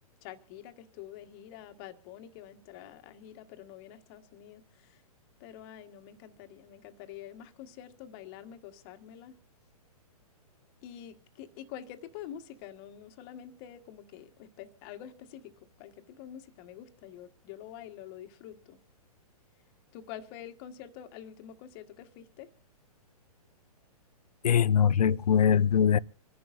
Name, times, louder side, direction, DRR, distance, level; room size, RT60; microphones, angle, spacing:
voice 1, 0.2-5.0 5.4-9.3 10.8-15.5 15.8-18.8 19.9-22.5, left 10 dB, 40° left, 1.5 m, -47 dB
voice 2, 24.4-26.0, left 8 dB, 80° left, 0.6 m, -22 dB
27.0 x 11.0 x 2.6 m
hypercardioid pair, 130°, 20 cm